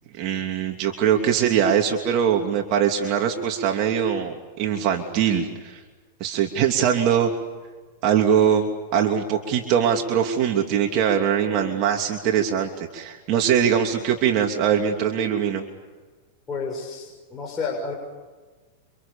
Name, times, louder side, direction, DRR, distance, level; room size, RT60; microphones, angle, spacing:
voice 1, 0.2-5.8 6.2-7.3 8.0-8.7 8.9-15.6, right 8 dB, 45° right, 2 dB, 2.9 m, -22 dB
voice 2, 16.5-17.9, left 4 dB, 20° left, -2 dB, 6.6 m, -30 dB
30.0 x 26.0 x 7.2 m, 1.4 s
hypercardioid pair, 130°, 0 cm